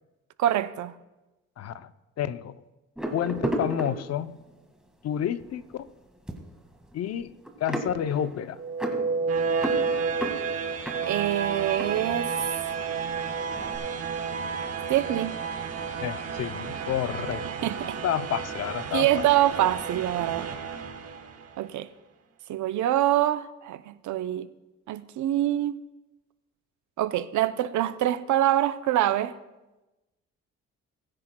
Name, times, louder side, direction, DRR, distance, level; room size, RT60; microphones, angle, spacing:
voice 1, 0.4-0.9 11.0-12.3 14.9-15.4 17.6-18.0 18.9-20.5 21.6-21.9 22.5-24.5 24.9-25.8 27.0-29.4, right 13 dB, 70° right, 0.6 m, -25 dB
voice 2, 1.6-1.9 2.2-2.6 3.1-4.3 5.0-5.9 6.9-7.3 7.6-8.6 16.0-17.7 18.0-19.2, left 10 dB, 55° left, 0.6 m, -30 dB
sound 1, 3.0-4.6 5.2-5.4 5.7-12.9 13.1-13.8, right 1 dB, ahead, 1.8 m, -34 dB
sound 2, 8.6-21.6, right 5 dB, 55° right, 1.1 m, -31 dB
20.0 x 9.8 x 2.2 m
cardioid pair, 90°, 30 cm